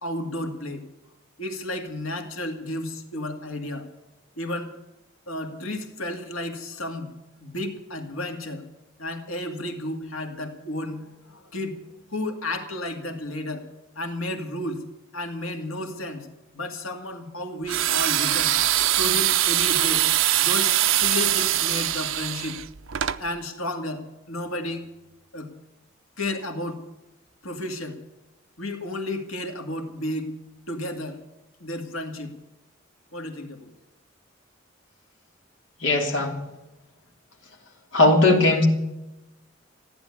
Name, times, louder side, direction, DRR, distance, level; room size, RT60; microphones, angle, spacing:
voice 1, 0.0-0.8 1.4-3.9 4.4-4.7 5.3-7.1 7.4-8.6 9.0-11.8 12.1-14.8 15.1-16.3 16.5-18.6 19.0-20.0 20.4-22.6 23.2-24.9 25.3-25.5 26.2-26.8 27.4-28.0 28.6-30.3 30.7-31.2 31.6-32.3 33.1-33.7, left 1 dB, 90° left, 4 dB, 2.3 m, -32 dB
sound 1, 17.7-23.2, right 13 dB, 70° right, 0.7 m, -22 dB
voice 2, 35.8-36.3 37.9-38.7, left 2 dB, 60° left, 1 dB, 3.1 m, -18 dB
15.0 x 10.5 x 8.4 m, 1.0 s
head